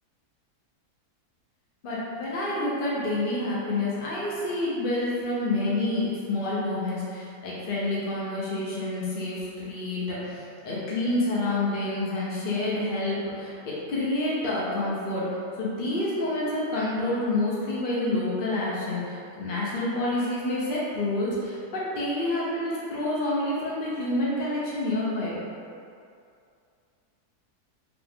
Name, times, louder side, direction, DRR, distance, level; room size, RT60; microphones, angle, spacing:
voice 1, 1.8-25.4, left 2 dB, 55° left, -7 dB, 0.6 m, -28 dB
5.0 x 2.4 x 3.5 m, 2.4 s
omnidirectional pair, 1.8 m